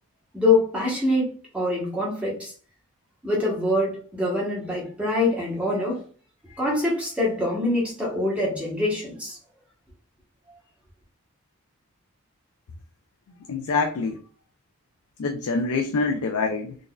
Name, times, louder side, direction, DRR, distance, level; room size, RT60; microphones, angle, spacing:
voice 1, 0.3-2.5 3.2-6.0 6.5-9.4, left 2 dB, 5° right, 1.0 m, -24 dB
voice 2, 13.5-14.2 15.2-16.8, left 4 dB, 80° left, 0.4 m, -25 dB
3.9 x 2.5 x 2.3 m
head